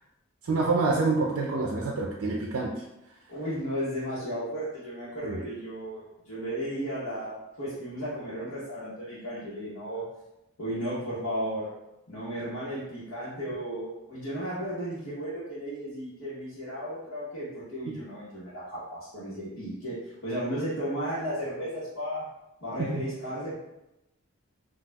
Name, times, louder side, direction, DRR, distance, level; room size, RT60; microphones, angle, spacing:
voice 1, 0.5-2.7 5.2-5.4 22.9-23.0, right 3 dB, 85° right, -2 dB, 0.4 m, -27 dB
voice 2, 3.3-10.1 10.6-11.7 12.1-22.3 22.6-23.5, equal, 80° left, -11 dB, 1.0 m, -34 dB
4.2 x 2.3 x 2.3 m, 0.90 s
head